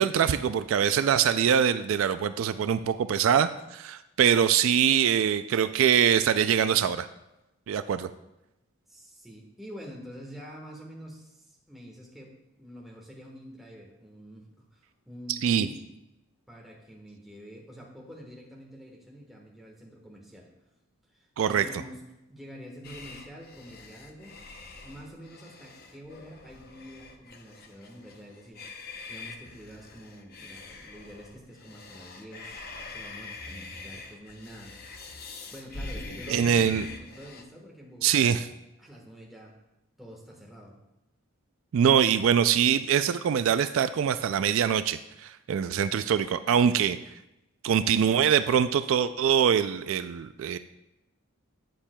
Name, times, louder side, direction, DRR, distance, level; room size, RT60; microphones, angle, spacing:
voice 1, 0.0-7.1 7.7-8.1 15.3-15.7 21.4-21.7 36.3-36.8 38.0-38.5 41.7-47.0 47.6-50.6, right 8 dB, 65° right, 12 dB, 0.3 m, -23 dB
voice 2, 8.9-15.8 16.5-20.5 21.1-22.0 22.3-24.3 24.8-28.6 29.1-35.2 35.5-38.5 38.8-39.6 40.0-40.8, equal, ahead, -1 dB, 1.3 m, -46 dB
sound 1, 22.8-37.4, left 3 dB, 45° left, 0.7 m, -44 dB
12.0 x 8.7 x 2.2 m, 0.92 s
head